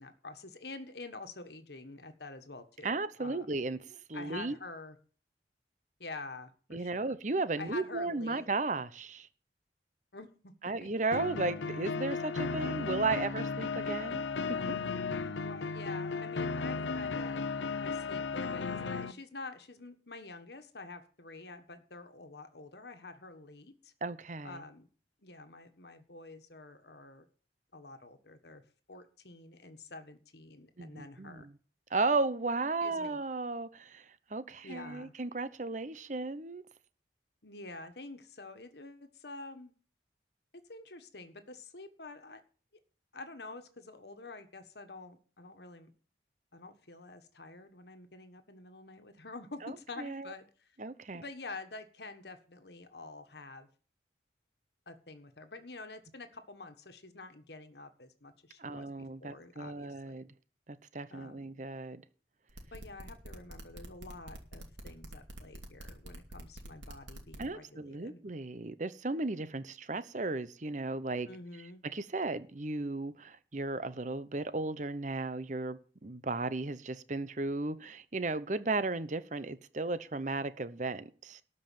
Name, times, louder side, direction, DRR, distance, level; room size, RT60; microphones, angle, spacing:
voice 1, 0.0-3.6 4.1-5.0 6.0-7.2 7.6-8.5 10.1-10.5 10.8-11.1 15.4-17.4 17.7-23.9 24.4-24.9 25.2-27.2 27.7-28.6 28.9-31.5 32.8-33.2 34.6-35.1 37.4-39.7 40.7-42.4 43.1-45.9 46.5-50.8 51.1-53.7 54.9-60.2 61.1-61.6 62.7-68.2 71.3-71.8, left 3 dB, 65° left, 1.5 m, -48 dB
voice 2, 2.8-4.6 6.7-9.3 10.6-14.2 14.7-14.8 24.0-24.6 30.8-31.5 31.9-36.6 49.6-50.3 50.8-51.2 58.6-60.3 60.7-62.0 67.4-71.3 71.9-81.4, right 3 dB, 40° right, 0.8 m, -35 dB
sound 1, 11.1-19.1, left 4 dB, 90° left, 0.8 m, -35 dB
sound 2, 62.5-67.4, right 1 dB, 85° right, 2.7 m, -46 dB
13.0 x 5.5 x 9.3 m
head